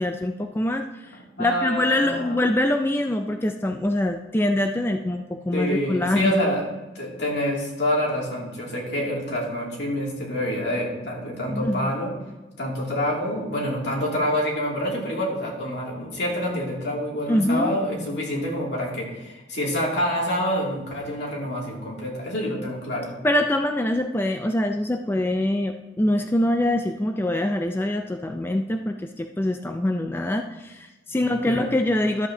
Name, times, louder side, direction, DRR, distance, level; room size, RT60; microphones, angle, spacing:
voice 1, 0.0-6.4 11.5-11.9 17.3-17.7 23.2-32.3, left 1 dB, 15° left, 5 dB, 0.4 m, -24 dB
voice 2, 1.4-2.4 5.5-6.6 6.9-12.1 12.6-23.2 31.2-31.7, equal, 65° left, -3 dB, 2.5 m, -27 dB
12.5 x 8.1 x 2.8 m, 1.1 s
head